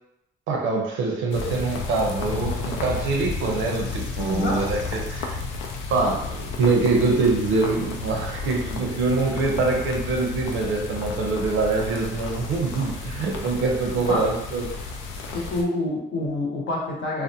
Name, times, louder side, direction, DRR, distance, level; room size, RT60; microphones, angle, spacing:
voice 1, 0.5-5.4 5.9-14.7, right 3 dB, 85° right, 1 dB, 0.6 m, -24 dB
sound 1, 1.3-15.6, left 4 dB, 85° left, 0.4 m, -32 dB
voice 2, 4.3-4.6 14.1-14.3 15.3-17.2, left 2 dB, 70° left, -2 dB, 0.8 m, -27 dB
2.5 x 2.1 x 2.7 m, 0.85 s
cardioid pair, 90°, 20 cm